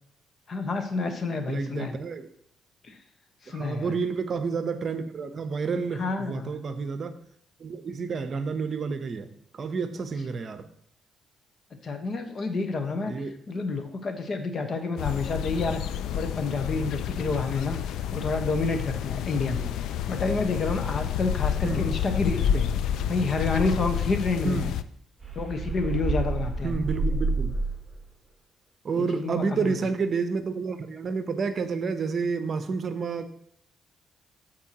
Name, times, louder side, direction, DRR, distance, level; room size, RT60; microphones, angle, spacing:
voice 1, 0.5-1.9 2.8-2.9 3.4-3.9 6.0-6.5 11.8-13.1 13.5-22.7 23.1-24.7 25.3-26.8 29.0-29.7, left 3 dB, 45° left, 6 dB, 1.2 m, -29 dB
voice 2, 1.5-2.3 3.5-7.2 7.6-10.6 13.1-13.3 21.6-21.8 24.4-24.7 26.6-27.5 28.8-33.3, right 5 dB, 45° right, 9 dB, 0.8 m, -30 dB
sound 1, 15.0-24.8, left 9 dB, 85° left, 0.4 m, -29 dB
sound 2, 25.2-28.0, right 3 dB, 15° right, 2.9 m, -28 dB
14.0 x 4.6 x 2.9 m, 0.71 s
cardioid pair, 90°, 0 cm